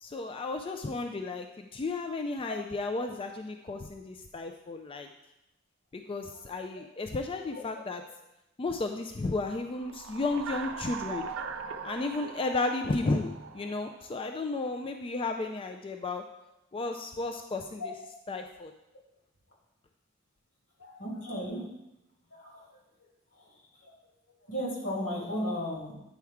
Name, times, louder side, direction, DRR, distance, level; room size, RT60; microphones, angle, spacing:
voice 1, 0.0-5.1 5.9-8.0 8.6-11.2 11.8-16.2 16.7-17.9 18.3-18.7, left 3 dB, 25° left, 5 dB, 0.3 m, -33 dB
sound 1, 9.7-14.4, right 6 dB, 75° right, 0.5 m, -41 dB
voice 2, 20.8-21.6 22.4-22.6 23.8-23.9 24.5-25.9, equal, 80° left, -5 dB, 2.9 m, -34 dB
9.1 x 4.5 x 3.5 m, 0.88 s
head